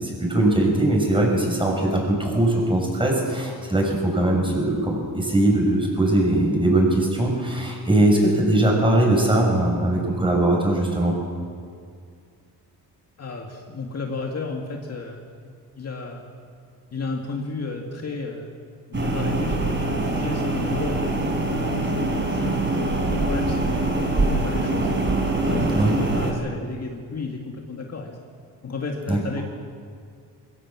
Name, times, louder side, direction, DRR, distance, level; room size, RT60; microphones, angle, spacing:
voice 1, 0.0-11.1 25.7-25.9 29.1-29.2, right 1 dB, 15° right, -1 dB, 7.3 m, -20 dB
voice 2, 13.2-16.2 16.9-18.5 18.9-21.0 21.5-25.2 25.4-28.2 28.6-29.4, left 3 dB, 40° left, 1 dB, 2.2 m, -33 dB
sound 1, 18.9-26.3, right 2 dB, 30° right, 4.2 m, -24 dB
21.5 x 17.0 x 7.6 m, 2.1 s
cardioid pair, 100°, 38 cm